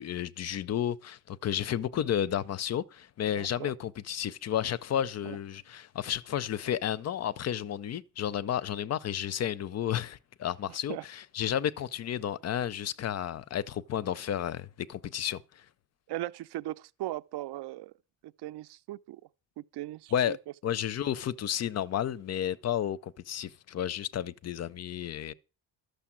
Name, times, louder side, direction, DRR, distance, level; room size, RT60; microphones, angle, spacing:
voice 1, 0.0-15.4 20.1-20.4 20.6-25.3, left 10 dB, 35° left, 0.5 m, -32 dB
voice 2, 3.3-3.7 5.2-5.4 10.7-11.0 16.1-17.9 18.2-19.2 19.6-20.4, right 15 dB, 60° right, 0.6 m, -38 dB
12.5 x 6.6 x 7.3 m
cardioid pair, 150°, 45 cm